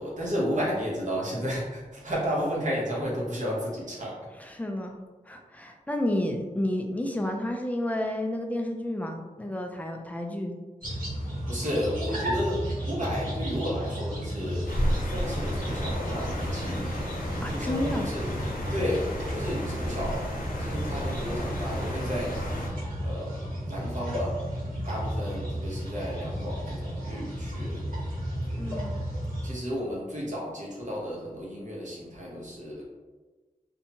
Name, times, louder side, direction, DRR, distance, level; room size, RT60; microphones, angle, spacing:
voice 1, 0.0-4.3 11.1-17.1 17.5-18.3 18.7-20.3 20.6-22.4 23.0-24.4 24.9-27.9 28.5-28.9 29.4-32.9, equal, 60° right, -5 dB, 1.0 m, -33 dB
voice 2, 4.4-5.0 5.3-10.5 17.4-18.1 28.6-29.0, left 1 dB, 10° left, 3 dB, 0.4 m, -31 dB
sound 1, 10.8-29.5, equal, 80° right, 1.1 m, -33 dB
sound 2, 14.7-22.7, equal, 75° left, 0.5 m, -33 dB
2.7 x 2.2 x 2.8 m, 1.3 s
wide cardioid pair, 55°, 15 cm